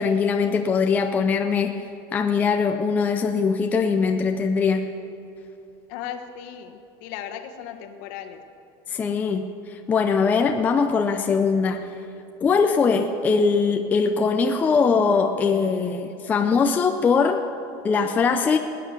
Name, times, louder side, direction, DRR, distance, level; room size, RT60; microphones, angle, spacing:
voice 1, 0.0-1.8 2.1-4.9 8.9-11.9 12.4-17.4 17.8-18.6, left 5 dB, 15° left, 5 dB, 0.5 m, -21 dB
voice 2, 5.9-8.4, left 9 dB, 55° left, 6 dB, 1.3 m, -36 dB
20.0 x 9.4 x 7.5 m, 2.7 s
cardioid pair, 175°, 11 cm